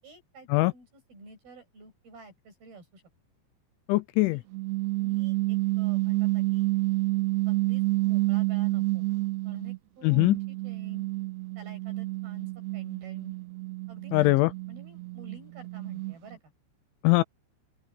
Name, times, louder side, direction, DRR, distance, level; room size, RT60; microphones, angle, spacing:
voice 1, 0.0-3.0 4.3-4.5 5.0-6.7 7.5-9.1 9.4-11.1 11.6-13.3 13.9-14.4 14.7-16.5, right 2 dB, 50° right, 9.3 m, -50 dB
voice 2, 3.9-4.4 10.0-10.4 14.1-14.5 17.0-17.2, left 22 dB, 80° left, 2.9 m, -21 dB
sound 1, 4.5-9.8 10.1-16.4, right 22 dB, 90° right, 2.6 m, -29 dB
open air
omnidirectional pair, 5.8 m